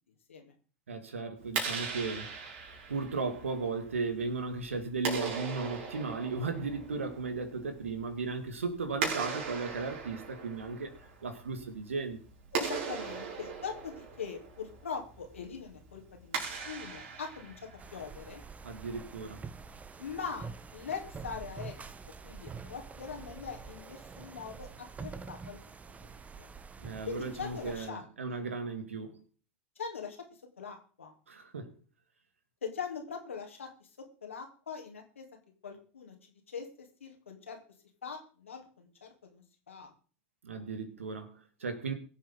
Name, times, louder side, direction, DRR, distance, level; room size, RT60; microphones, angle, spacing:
voice 1, 0.9-10.9 11.2-12.2 18.6-19.5 26.8-29.2 31.3-31.8 40.4-41.9, right 4 dB, 85° right, 2.3 m, -36 dB
Clapping, 1.4-18.1, right 5 dB, 65° right, 4.4 m, -40 dB
voice 2, 12.5-18.4 20.0-20.5 20.7-21.7 22.2-25.7 26.0-26.5 27.1-28.0 28.3-28.4 29.8-30.2 30.6-31.1 32.6-33.9 34.2-35.2 35.6-37.6 38.0-39.9, left 6 dB, 85° left, 3.2 m, -42 dB
sound 1, 17.8-27.9, right 5 dB, 20° right, 1.1 m, -46 dB
22.0 x 7.7 x 3.9 m
hypercardioid pair, 85°, 7 cm